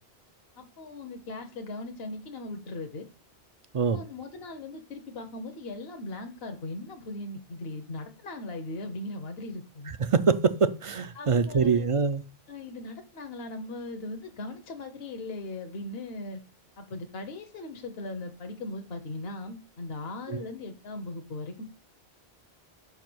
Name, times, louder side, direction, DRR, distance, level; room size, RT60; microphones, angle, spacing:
voice 1, 0.6-3.1 3.9-9.9 11.1-11.9 12.5-16.4 16.8-21.6, left 2 dB, 70° left, 1.1 m, -39 dB
voice 2, 10.0-12.2 20.3-20.4, right 5 dB, 50° right, 0.4 m, -24 dB
5.5 x 4.8 x 6.0 m
omnidirectional pair, 1.0 m